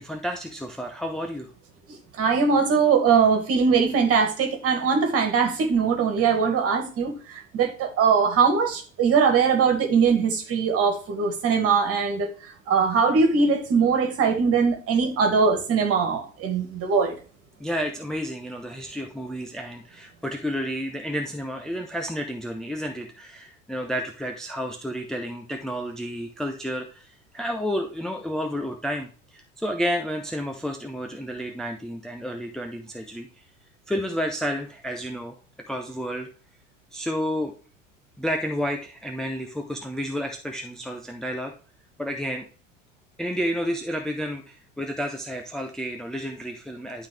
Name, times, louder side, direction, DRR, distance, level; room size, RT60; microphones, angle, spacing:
voice 1, 0.0-1.5 17.6-33.4 33.9-35.4 35.7-36.3 36.9-37.5 38.2-41.5 42.0-42.4 43.2-47.1, equal, ahead, 2 dB, 0.7 m, -31 dB
voice 2, 2.2-12.3 12.7-17.1, right 5 dB, 35° right, 4 dB, 2.2 m, -21 dB
11.5 x 3.9 x 3.3 m, 0.38 s
figure-of-eight pair, 75°, 39 cm